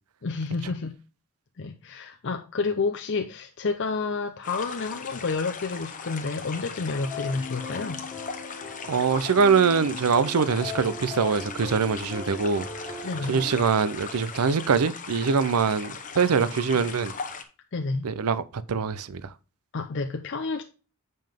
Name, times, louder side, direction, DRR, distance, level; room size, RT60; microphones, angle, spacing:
voice 1, 0.2-0.9 1.6-8.0 13.0-13.4 17.7-18.1 19.7-20.6, left 4 dB, 55° left, 0.6 m, -29 dB
sound 1, 4.4-17.4, left 5 dB, 35° left, 0.9 m, -39 dB
sound 2, 6.9-13.6, left 3 dB, 10° left, 1.6 m, -39 dB
voice 2, 8.9-12.9 13.3-17.1 18.0-19.3, right 5 dB, 80° right, 0.5 m, -23 dB
7.6 x 5.3 x 3.5 m
head